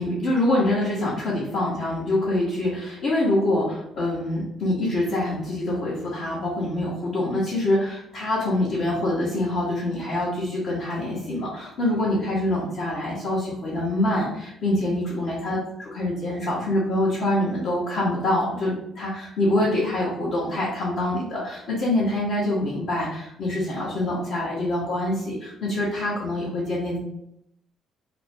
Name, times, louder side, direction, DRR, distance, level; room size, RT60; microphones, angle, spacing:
voice 1, 0.0-27.0, left 1 dB, 60° left, -8 dB, 0.8 m, -25 dB
2.5 x 2.0 x 3.1 m, 0.78 s
hypercardioid pair, 45°, 0 cm